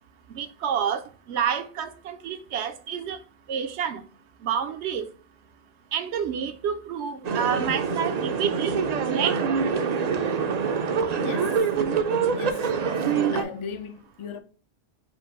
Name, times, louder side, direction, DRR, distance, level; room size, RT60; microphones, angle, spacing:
voice 1, 0.3-3.2 3.5-4.0 4.4-5.0 5.9-8.8 9.1-9.4, right 8 dB, 80° right, 0.9 m, -28 dB
sound 1, 7.2-13.4, right 6 dB, 55° right, 0.4 m, -25 dB
voice 2, 11.1-11.7 12.3-12.8 13.3-14.4, left 6 dB, 60° left, 0.3 m, -37 dB
4.5 x 2.5 x 3.6 m
omnidirectional pair, 1.1 m